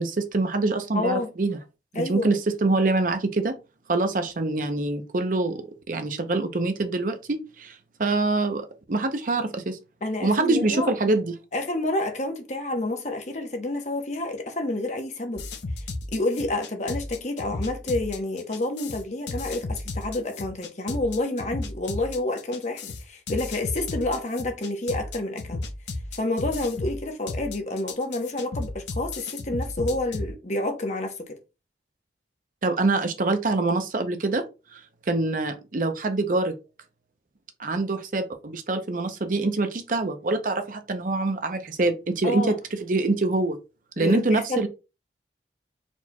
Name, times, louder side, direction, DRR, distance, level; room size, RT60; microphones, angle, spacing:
voice 1, 0.0-1.6 2.0-3.6 3.9-9.8 10.2-11.3 32.6-34.4 34.7-34.8 35.1-36.5 37.6-42.5 42.8-43.6 44.0-44.7, right 2 dB, 50° right, 0.6 m, -25 dB
voice 2, 0.9-1.3 1.9-2.3 10.0-10.9 11.5-15.5 16.1-25.6 26.1-31.4 42.2-42.6 44.0-44.7, left 2 dB, 40° left, 0.9 m, -29 dB
sound 1, 15.4-30.3, left 2 dB, 80° left, 0.6 m, -34 dB
4.4 x 4.4 x 2.2 m
head